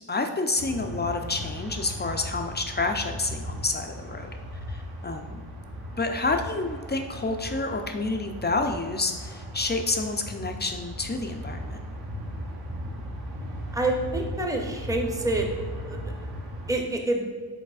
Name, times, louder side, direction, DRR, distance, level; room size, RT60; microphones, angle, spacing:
voice 1, 0.1-4.3 4.7-5.4 6.0-11.8, left 3 dB, 25° left, 4 dB, 0.3 m, -29 dB
sound 1, 0.6-16.7, equal, 55° right, 0.8 m, -37 dB
voice 2, 13.7-15.5 15.9-16.0 16.7-17.3, right 2 dB, 10° right, 2 dB, 0.6 m, -27 dB
4.8 x 4.0 x 2.3 m, 1.5 s
cardioid pair, 50°, 44 cm